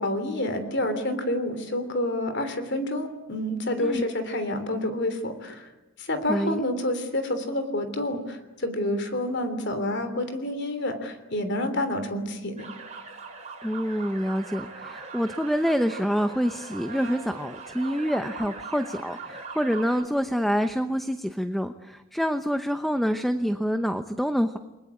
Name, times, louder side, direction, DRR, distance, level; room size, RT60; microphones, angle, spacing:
voice 1, 0.0-5.7 6.0-12.6, left 1 dB, 55° left, 9 dB, 3.3 m, -28 dB
voice 2, 6.3-6.6 13.6-24.6, equal, ahead, 8 dB, 0.8 m, -27 dB
sound 1, 12.6-20.0, right 4 dB, 35° right, 4.8 m, -41 dB
29.5 x 21.5 x 8.4 m, 1.1 s
head